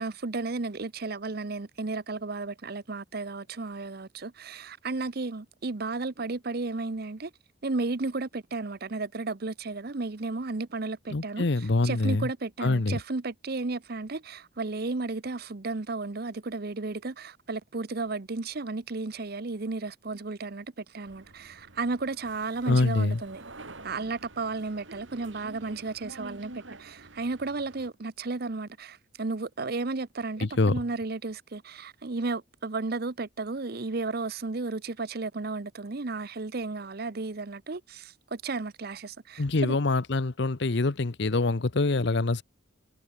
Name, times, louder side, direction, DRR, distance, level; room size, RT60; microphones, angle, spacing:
voice 1, 0.0-7.3 7.6-11.5 11.8-23.4 23.8-39.8, right 3 dB, 50° right, 0.8 m, -33 dB
voice 2, 11.1-12.3 12.6-13.0 22.7-23.2 30.4-30.8 39.4-42.4, left 2 dB, 60° left, 0.9 m, -25 dB
sound 1, 21.0-27.9, right 2 dB, 75° right, 3.5 m, -48 dB
head